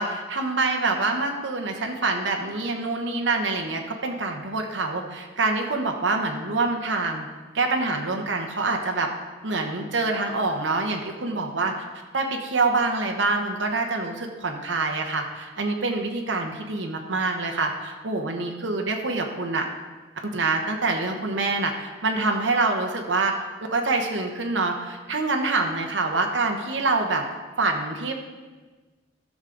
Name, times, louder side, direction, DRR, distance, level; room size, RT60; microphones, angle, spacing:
voice 1, 0.0-7.3 7.5-9.1 9.4-11.8 12.1-19.7 20.3-23.3 23.6-27.2 27.6-28.2, right 3 dB, 80° right, 3 dB, 1.0 m, -26 dB
13.5 x 6.3 x 3.9 m, 1.3 s
head